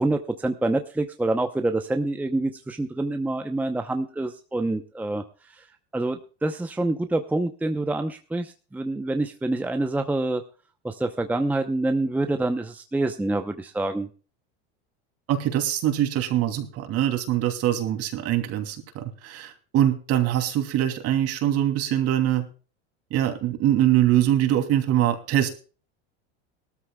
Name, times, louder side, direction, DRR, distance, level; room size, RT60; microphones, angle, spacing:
voice 1, 0.0-5.2 5.9-10.4 10.8-14.1, right 2 dB, 5° right, 6 dB, 0.8 m, -26 dB
voice 2, 15.3-22.5 23.1-25.5, right 12 dB, 50° right, 6 dB, 2.9 m, -23 dB
20.0 x 13.0 x 2.3 m, 0.37 s
supercardioid pair, 125°, 32 cm